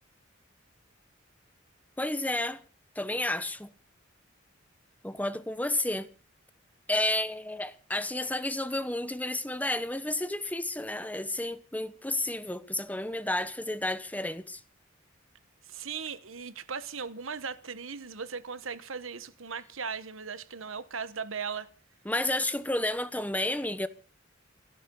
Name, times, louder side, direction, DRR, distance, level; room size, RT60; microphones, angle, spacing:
voice 1, 2.0-2.6 3.0-3.7 5.0-6.1 6.9-14.6 22.0-23.9, left 1 dB, 10° left, 1.1 m, -31 dB
voice 2, 15.7-21.7, right 5 dB, 80° right, 1.2 m, -38 dB
29.5 x 10.0 x 3.9 m
head